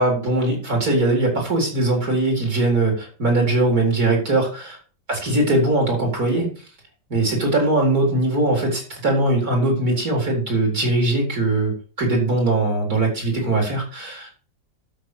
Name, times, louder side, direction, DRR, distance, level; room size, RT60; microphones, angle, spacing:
voice 1, 0.0-4.8 5.1-6.5 7.1-14.3, right 2 dB, 50° right, 0 dB, 4.7 m, -20 dB
12.5 x 6.5 x 5.1 m, 0.38 s
omnidirectional pair, 2.0 m